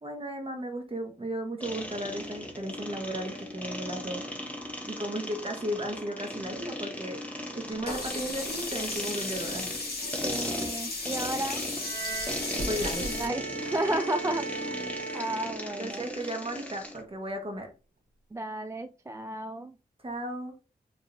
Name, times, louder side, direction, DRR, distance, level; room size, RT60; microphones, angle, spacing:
voice 1, 0.0-4.2 4.9-7.2 7.5-9.7 12.6-13.1 13.6-13.9 15.8-17.7 20.0-20.5, right 1 dB, 35° right, 3 dB, 1.3 m, -35 dB
sound 1, 1.6-17.0, left 1 dB, 10° left, 1.2 m, -38 dB
Sink (filling or washing), 7.9-13.3, left 2 dB, 75° left, 2.0 m, -35 dB
voice 2, 10.2-11.6 12.9-14.8 15.1-16.1 18.3-19.7, right 1 dB, 20° right, 7 dB, 0.3 m, -33 dB
Bowed string instrument, 11.8-16.2, right 5 dB, 75° right, 1.2 m, -38 dB
4.8 x 3.7 x 2.7 m, 0.32 s
wide cardioid pair, 75°, 16 cm